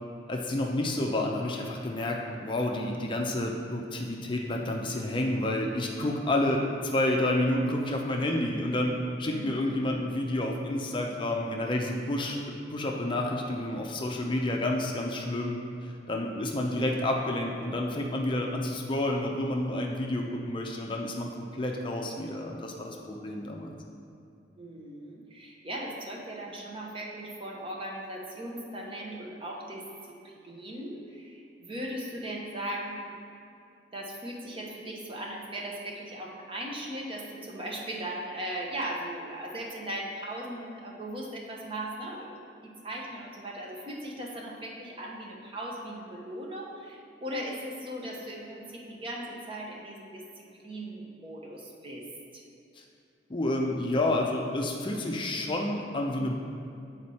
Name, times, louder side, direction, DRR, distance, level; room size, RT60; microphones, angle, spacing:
voice 1, 0.3-23.7 52.8-52.9 53.3-56.3, left 1 dB, 30° left, 0 dB, 0.5 m, -30 dB
voice 2, 9.3-9.8 13.7-13.8 24.6-33.1 33.9-52.0 52.3-52.4, right 1 dB, 30° right, -2 dB, 0.9 m, -38 dB
7.9 x 4.2 x 4.2 m, 2.6 s
head